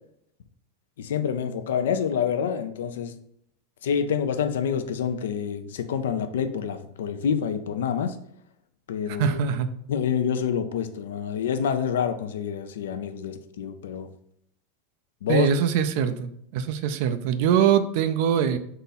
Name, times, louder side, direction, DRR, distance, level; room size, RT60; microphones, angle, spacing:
voice 1, 1.0-3.1 3.8-8.2 8.9-9.4 9.9-14.1 15.2-15.5, left 7 dB, 85° left, 0.4 m, -27 dB
voice 2, 9.1-9.7 15.3-18.6, right 8 dB, 65° right, 0.4 m, -23 dB
3.7 x 2.8 x 4.0 m
supercardioid pair, 120°, 0 cm